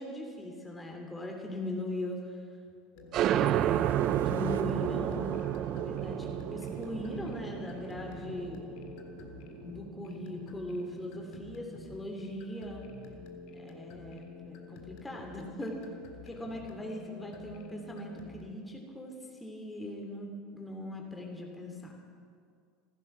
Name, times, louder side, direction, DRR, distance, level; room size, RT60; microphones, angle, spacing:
voice 1, 0.0-2.2 3.2-8.6 9.5-12.9 13.5-15.8 16.2-19.1 19.4-21.9, left 1 dB, 10° left, 1 dB, 2.9 m, -40 dB
sound 1, 2.9-18.4, left 3 dB, 55° left, 1.8 m, -49 dB
sound 2, 3.1-10.4, right 11 dB, 45° right, 0.5 m, -31 dB
sound 3, 3.4-8.5, right 6 dB, 70° right, 1.0 m, -47 dB
15.5 x 15.0 x 6.1 m, 2.2 s
figure-of-eight pair, 75°, 0 cm